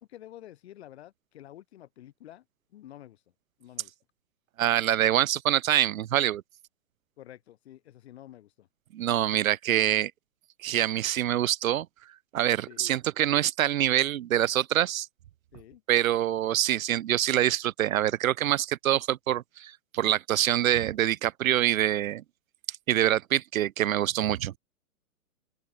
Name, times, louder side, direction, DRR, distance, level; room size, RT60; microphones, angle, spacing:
voice 1, 0.1-2.4 2.7-3.2 3.6-3.9 7.2-8.7 12.7-12.8 15.5-15.8, left 13 dB, 45° left, 3.4 m, -49 dB
voice 2, 4.6-6.4 8.9-10.1 10.6-11.9 12.3-15.1 15.9-22.2 22.7-24.5, right 12 dB, 65° right, 0.7 m, -25 dB
hypercardioid pair, 165°, 45 cm